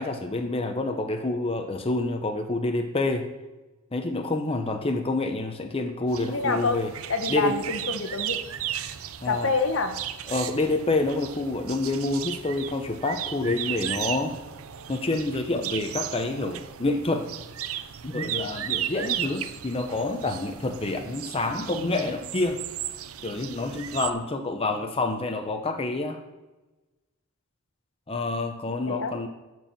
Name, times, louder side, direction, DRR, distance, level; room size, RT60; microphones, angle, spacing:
voice 1, 0.0-3.3 3.9-6.9 7.3-7.5 9.2-9.5 10.3-14.4 14.9-17.3 18.0-22.6 23.2-26.2 28.1-29.3, left 2 dB, 25° left, 5 dB, 0.7 m, -28 dB
sound 1, 6.1-24.1, right 11 dB, 85° right, 0.6 m, -35 dB
voice 2, 6.3-6.8 7.1-8.4 9.2-10.0 28.9-29.1, left 3 dB, 65° left, 7 dB, 1.1 m, -26 dB
12.5 x 4.7 x 7.4 m, 1.1 s
head